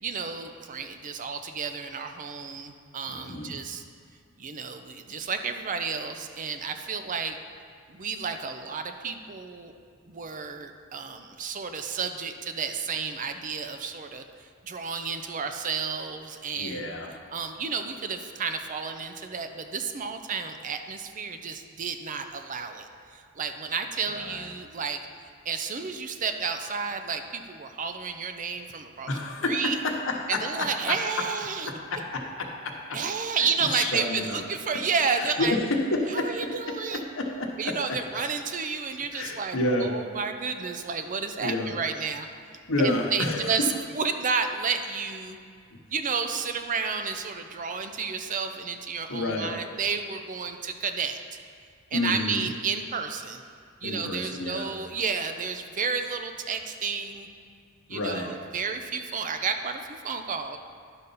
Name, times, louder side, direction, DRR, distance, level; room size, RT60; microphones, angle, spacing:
voice 1, 0.0-3.8 4.4-7.4 7.9-9.7 10.1-16.9 17.3-25.0 25.4-29.1 29.4-29.8 30.3-31.7 32.9-35.6 36.1-37.1 37.6-42.3 42.8-43.7 43.9-45.4 45.9-51.2 51.9-53.4 53.8-57.3 57.9-60.6, right 5 dB, 40° right, 7 dB, 0.5 m, -31 dB
voice 2, 3.1-3.6 16.6-17.1 24.1-24.4 29.1-30.9 31.9-33.0 33.4-34.4 35.2-36.3 37.2-37.7 39.1-39.9 41.4-41.7 42.7-43.6 45.7-45.8 49.1-49.5 51.9-52.5 53.8-54.7 57.9-58.3, left 2 dB, 65° left, 1 dB, 1.1 m, -29 dB
11.0 x 4.0 x 5.5 m, 2.2 s
head